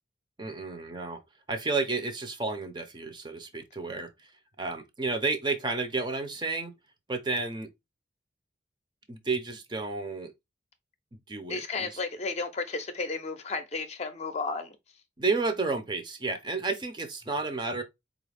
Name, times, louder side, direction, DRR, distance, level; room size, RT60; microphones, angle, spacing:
voice 1, 0.4-1.2 1.5-4.3 4.6-6.7 7.1-7.7 9.1-10.3 11.1-11.9 15.2-17.8, right 3 dB, 25° right, 0.6 m, -31 dB
voice 2, 11.5-14.8, left 4 dB, 35° left, 0.6 m, -33 dB
4.4 x 2.4 x 3.3 m
head